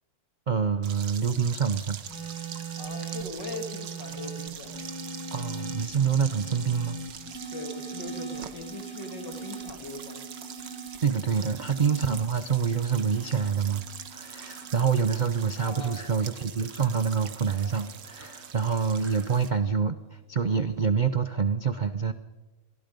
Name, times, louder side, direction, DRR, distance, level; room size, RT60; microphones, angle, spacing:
voice 1, 0.5-2.0 5.3-7.0 11.0-13.8 14.1-22.1, right 6 dB, 55° right, 11 dB, 0.5 m, -26 dB
sound 1, 0.8-19.5, right 8 dB, 90° right, 1.9 m, -43 dB
sound 2, 2.0-18.5 19.4-19.8, right 4 dB, 55° left, 4.2 m, -41 dB
voice 2, 2.7-4.8 7.5-10.2 15.6-16.0, left 3 dB, 75° left, 5 dB, 3.3 m, -40 dB
Fowl, 14.1-19.4, equal, 10° right, 2.7 m, -54 dB
28.0 x 22.0 x 5.3 m, 1.2 s
omnidirectional pair, 1.9 m